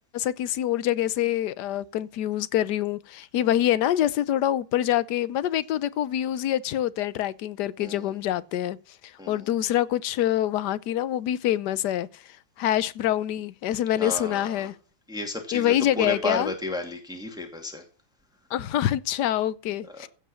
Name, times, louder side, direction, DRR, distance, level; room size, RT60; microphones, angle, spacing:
voice 1, 0.1-8.8 9.0-14.7 15.5-16.5 18.5-20.1, left 12 dB, 65° left, 1.2 m, -26 dB
voice 2, 7.8-8.1 9.2-9.4 14.0-14.7 15.1-17.8 19.9-20.1, left 1 dB, ahead, 2.3 m, -33 dB
15.5 x 5.3 x 7.0 m
omnidirectional pair, 2.2 m